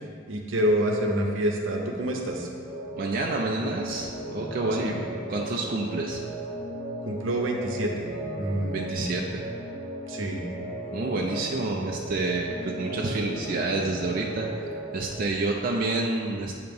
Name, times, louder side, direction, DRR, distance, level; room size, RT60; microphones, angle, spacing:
voice 1, 0.3-2.5 4.8-5.1 7.1-8.1 8.3-9.1 10.1-10.4, right 1 dB, 75° right, 1 dB, 0.8 m, -27 dB
sound 1, 2.6-15.2, right 1 dB, 5° left, 1.1 m, -36 dB
voice 2, 3.0-5.0 5.3-6.2 8.7-9.2 10.9-16.5, right 2 dB, 45° right, -1 dB, 0.4 m, -29 dB
7.7 x 2.9 x 5.3 m, 2.2 s
head